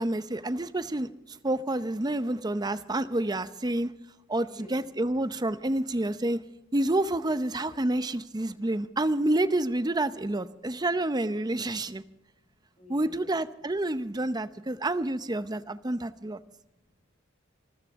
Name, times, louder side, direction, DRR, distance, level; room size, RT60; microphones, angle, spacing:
voice 1, 0.0-3.9 4.3-6.4 6.7-12.0 12.9-16.4, right 1 dB, 20° right, 13 dB, 0.7 m, -28 dB
voice 2, 4.4-4.8 11.8-13.4 14.7-14.8 16.0-17.0, left 1 dB, 35° left, 0 dB, 7.7 m, -55 dB
26.0 x 14.0 x 3.6 m, 0.87 s
head